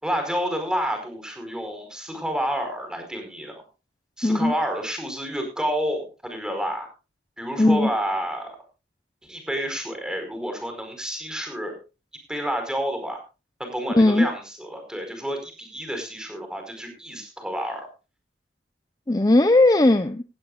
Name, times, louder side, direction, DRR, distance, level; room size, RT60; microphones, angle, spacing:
voice 1, 0.0-3.6 4.2-6.9 7.4-8.6 9.3-11.8 12.3-13.2 13.6-17.9, equal, 5° right, 5 dB, 4.7 m, -29 dB
voice 2, 4.2-4.5 7.6-7.9 13.9-14.3 19.1-20.2, left 2 dB, 20° left, 10 dB, 0.7 m, -17 dB
17.0 x 16.0 x 2.4 m, 0.31 s
head